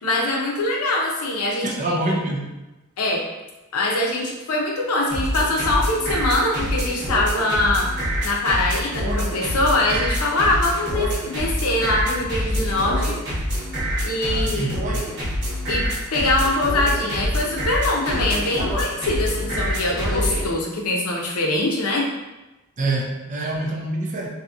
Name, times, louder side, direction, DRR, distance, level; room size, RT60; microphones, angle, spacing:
voice 1, 0.0-2.1 3.0-3.2 3.7-7.9 8.2-13.2 14.0-14.9 15.7-22.0, left 2 dB, 90° left, -2 dB, 0.6 m, -23 dB
voice 2, 1.6-2.5 14.3-15.1 22.8-24.3, right 2 dB, 35° right, -1 dB, 0.4 m, -26 dB
sound 1, 5.1-20.5, equal, 60° right, 1.0 m, -25 dB
2.8 x 2.7 x 2.4 m, 1.1 s
head